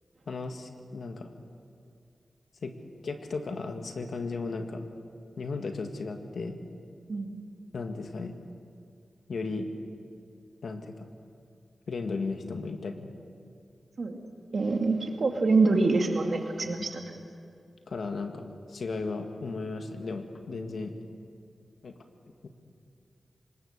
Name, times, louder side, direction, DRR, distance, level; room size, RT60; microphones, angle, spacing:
voice 1, 0.3-1.3 2.6-2.7 3.0-4.9 5.4-6.6 7.7-8.3 9.3-9.7 10.6-11.1 11.9-13.1 16.6-16.9 17.9-21.0 21.8-21.9 22.4-22.5, left 3 dB, 80° left, 5 dB, 1.8 m, -35 dB
voice 2, 7.1-7.4 14.0-14.2 14.5-17.0, right 3 dB, 60° right, 3 dB, 2.4 m, -25 dB
25.0 x 20.0 x 6.6 m, 2.4 s
wide cardioid pair, 95°, 0 cm